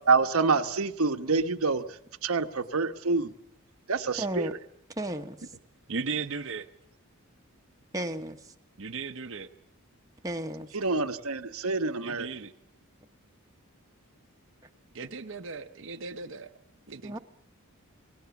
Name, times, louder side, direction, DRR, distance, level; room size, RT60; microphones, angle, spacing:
voice 1, 0.1-1.8 2.2-3.3 3.9-4.5 10.7-12.3, right 4 dB, 75° right, 1.1 m, -26 dB
voice 2, 4.2-4.6 5.0-5.4 7.9-8.4 10.2-10.7 17.0-17.2, right 1 dB, 15° right, 1.0 m, -33 dB
voice 3, 5.9-6.7 8.8-9.5 12.0-12.5 14.9-16.5 16.9-17.2, right 4 dB, 60° right, 0.8 m, -36 dB
28.0 x 18.5 x 7.1 m
head